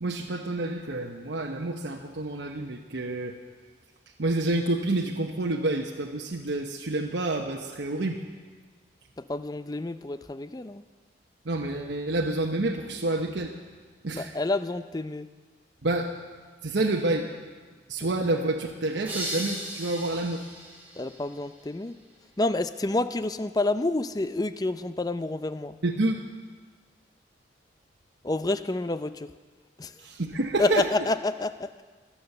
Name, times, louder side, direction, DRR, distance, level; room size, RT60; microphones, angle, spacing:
voice 1, 0.0-3.4 4.2-8.2 11.4-13.5 14.0-14.3 15.8-16.1 16.6-17.3 17.9-20.4 25.8-26.2 30.0-30.9, right 2 dB, 75° right, 1 dB, 1.0 m, -28 dB
voice 2, 9.3-10.8 14.1-15.3 21.0-21.9 22.4-25.8 28.2-29.3 29.8-29.9 30.6-31.8, left 2 dB, 20° left, 12 dB, 0.5 m, -28 dB
sound 1, 19.1-21.8, right 1 dB, 10° right, 3.2 m, -37 dB
22.5 x 8.8 x 6.7 m, 1.5 s
head